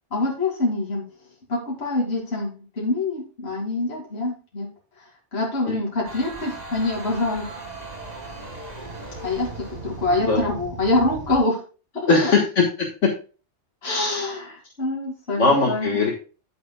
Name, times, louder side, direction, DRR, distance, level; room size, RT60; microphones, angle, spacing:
voice 1, 0.1-1.0 1.5-4.7 5.0-5.1 5.3-7.5 9.2-11.6 11.9-12.3 13.8-16.0, left 2 dB, 60° left, -3 dB, 2.8 m, -25 dB
sound 1, 6.0-11.4, right 3 dB, 35° right, 2.1 m, -37 dB
voice 2, 12.1-13.1 13.8-14.3 15.4-16.1, left 3 dB, 85° left, -1 dB, 1.9 m, -20 dB
10.0 x 9.2 x 2.3 m, 0.35 s
omnidirectional pair, 1.2 m